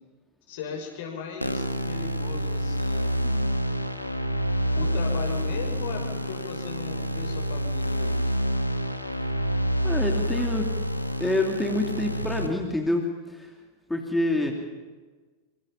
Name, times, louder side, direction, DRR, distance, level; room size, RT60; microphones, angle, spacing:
voice 1, 0.5-3.6 4.8-8.1 14.4-14.5, left 5 dB, 55° left, 3 dB, 6.1 m, -38 dB
sound 1, 1.4-12.5, equal, 90° left, 1.8 m, -27 dB
voice 2, 9.8-10.7 11.2-13.5 13.9-14.5, left 2 dB, 5° left, 2 dB, 2.8 m, -27 dB
25.5 x 25.5 x 5.8 m, 1.4 s
figure-of-eight pair, 90°, 0 cm